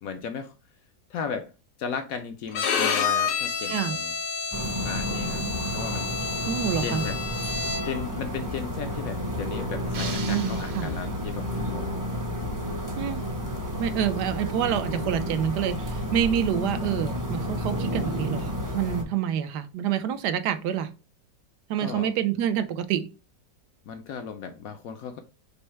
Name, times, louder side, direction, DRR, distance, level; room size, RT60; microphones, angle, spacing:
voice 1, 0.0-0.5 1.1-1.5 1.8-4.1 4.8-5.4 5.7-6.1 6.8-7.1 7.5-11.9 21.8-22.1 23.9-25.2, left 6 dB, 70° left, 0.9 m, -35 dB
Bowed string instrument, 2.5-8.1, left 5 dB, 85° left, 1.5 m, -29 dB
sound 1, 4.5-19.0, equal, 25° right, 0.4 m, -31 dB
voice 2, 6.5-7.0 10.3-10.9 13.0-13.2 13.8-20.9 21.7-23.0, right 9 dB, 80° right, 1.2 m, -27 dB
sound 2, 9.9-11.5, right 5 dB, 50° right, 0.9 m, -39 dB
5.4 x 2.1 x 4.4 m
omnidirectional pair, 1.8 m